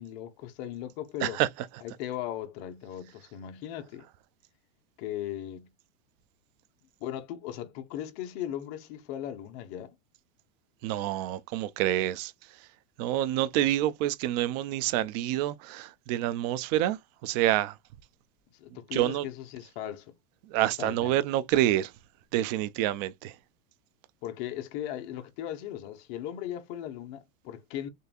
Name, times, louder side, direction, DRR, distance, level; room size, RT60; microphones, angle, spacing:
voice 1, 0.0-1.4 1.8-4.1 5.0-5.7 7.0-9.9 18.5-20.1 20.6-21.2 24.2-27.9, left 11 dB, 50° left, 1.1 m, -38 dB
voice 2, 10.8-12.3 13.0-17.8 18.9-19.3 20.5-21.9 22.3-23.4, right 13 dB, 35° right, 0.4 m, -27 dB
6.6 x 2.6 x 2.4 m
supercardioid pair, 150°, 41 cm